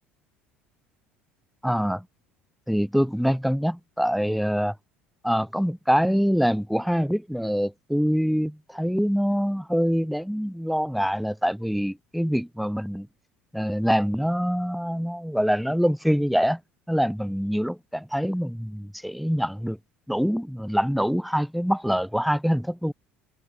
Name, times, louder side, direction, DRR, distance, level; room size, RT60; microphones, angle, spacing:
voice 1, 1.6-2.1 2.7-4.8 5.2-13.1 13.5-16.6 16.9-19.8 20.1-22.9, equal, ahead, 0.3 m, -25 dB
figure-of-eight pair, 65°, 6 cm